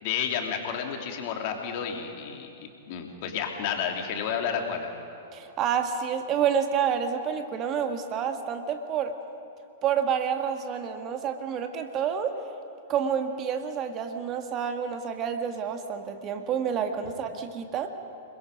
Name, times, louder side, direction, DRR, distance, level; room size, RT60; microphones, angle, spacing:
voice 1, 0.0-2.5 2.9-4.9, left 7 dB, 50° left, 2 dB, 3.0 m, -31 dB
voice 2, 5.3-9.1 9.8-12.4 12.9-17.9, right 7 dB, 35° right, 6 dB, 1.8 m, -28 dB
29.5 x 21.0 x 5.3 m, 2.7 s
figure-of-eight pair, 100°, 0 cm